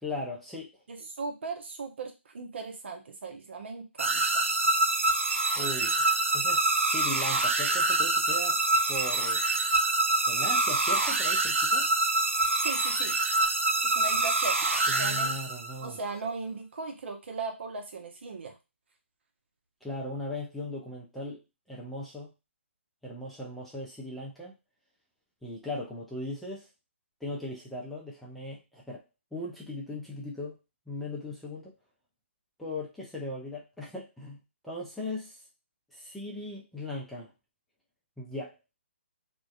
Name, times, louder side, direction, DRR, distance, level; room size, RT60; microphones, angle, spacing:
voice 1, 0.0-0.7 5.6-6.0 6.3-8.6 8.9-9.6 10.3-11.9 14.9-16.0 19.8-21.4 21.7-22.3 23.0-24.5 25.4-26.7 27.2-29.0 29.3-30.6 30.9-31.7 32.6-34.4 34.6-35.4 35.9-37.3 38.2-38.6, left 2 dB, ahead, -5 dB, 0.4 m, -38 dB
voice 2, 0.9-4.4 12.6-13.3 13.8-15.4 15.8-18.6, right 4 dB, 60° right, 3 dB, 0.8 m, -38 dB
sound 1, 4.0-15.9, right 2 dB, 85° right, 0.4 m, -26 dB
2.5 x 2.2 x 2.3 m, 0.25 s
figure-of-eight pair, 145°, 7 cm